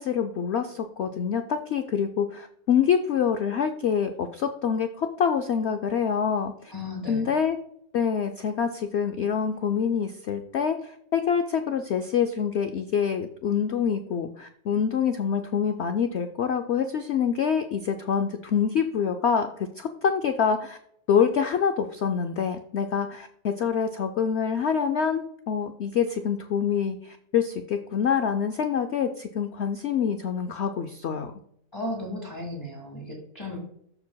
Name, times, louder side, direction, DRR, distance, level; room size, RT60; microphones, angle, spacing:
voice 1, 0.0-6.7 7.1-7.6 7.9-19.5 19.8-20.8 21.1-31.3, left 7 dB, 85° left, 7 dB, 0.5 m, -26 dB
voice 2, 6.7-7.3 31.7-33.6, left 1 dB, 15° left, -3 dB, 1.6 m, -35 dB
14.0 x 4.7 x 2.2 m, 0.69 s
omnidirectional pair, 1.8 m